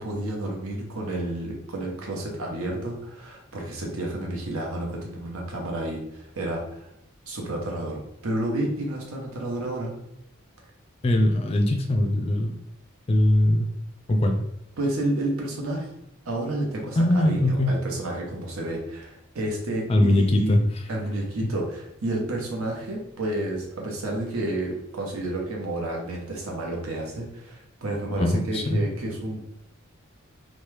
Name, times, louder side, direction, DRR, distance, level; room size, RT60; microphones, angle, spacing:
voice 1, 0.0-6.9 7.3-9.9 14.8-15.9 16.2-20.6 20.9-29.5, right 1 dB, 85° right, 0 dB, 0.9 m, -30 dB
voice 2, 11.0-12.5 13.1-13.7 14.1-14.4 17.0-17.8 19.9-20.6 28.2-28.8, left 1 dB, 30° left, 4 dB, 0.3 m, -21 dB
3.0 x 2.2 x 3.2 m, 0.81 s
head